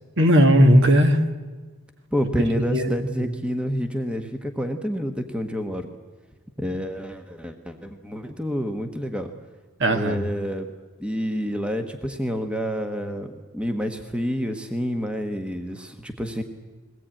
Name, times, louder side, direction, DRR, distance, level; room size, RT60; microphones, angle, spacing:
voice 1, 0.2-1.2 2.7-3.3 9.8-10.2, equal, 55° right, 7 dB, 1.6 m, -17 dB
voice 2, 2.1-5.9 6.6-9.3 9.9-10.7 11.0-16.4, equal, 5° right, 6 dB, 1.1 m, -28 dB
21.5 x 17.0 x 8.9 m, 1.4 s
head